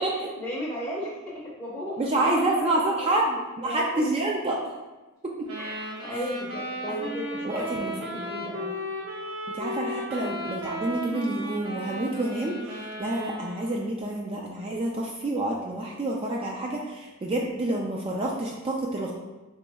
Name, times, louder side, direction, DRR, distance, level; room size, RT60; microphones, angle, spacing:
voice 1, 0.0-3.2 3.6-4.1 5.6-8.8, equal, 15° left, -6 dB, 0.6 m, -36 dB
voice 2, 2.0-4.6 5.2-5.5 6.9-7.0 7.4-7.9 9.5-19.1, right 2 dB, 25° right, -2 dB, 0.3 m, -28 dB
sound 1, 5.5-13.8, equal, 80° right, 1.1 m, -35 dB
3.8 x 3.0 x 3.4 m, 1.1 s
head